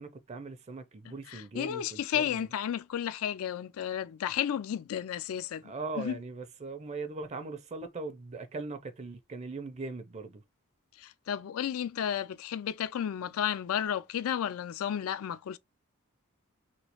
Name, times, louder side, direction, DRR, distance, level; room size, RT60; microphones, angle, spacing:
voice 1, 0.0-2.4 5.6-10.4, right 3 dB, 30° right, 0.4 m, -40 dB
voice 2, 1.3-5.6 6.0-6.1 11.0-15.6, left 9 dB, 75° left, 0.3 m, -32 dB
3.1 x 2.9 x 2.9 m
head